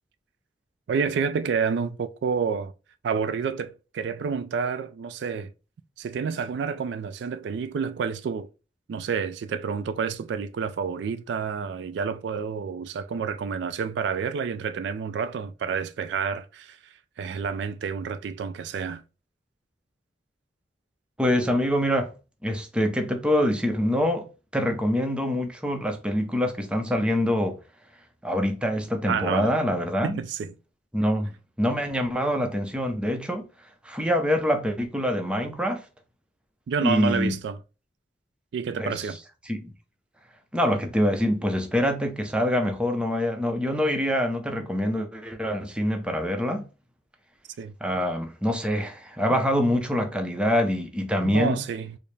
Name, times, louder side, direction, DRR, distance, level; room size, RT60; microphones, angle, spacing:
voice 1, 0.9-2.7 3.0-5.5 6.0-8.5 8.9-19.0 29.1-29.6 30.0-30.6 36.7-37.6 38.5-39.2 47.6-47.7 51.2-52.0, right 6 dB, 65° right, 0.3 m, -29 dB
voice 2, 21.2-22.1 22.4-24.3 24.5-27.6 28.2-30.2 30.9-31.3 31.6-33.5 33.8-35.8 36.8-37.3 38.8-38.9 39.5-39.7 40.5-46.6 47.8-51.6, equal, 5° right, 0.6 m, -25 dB
4.5 x 2.0 x 3.2 m
head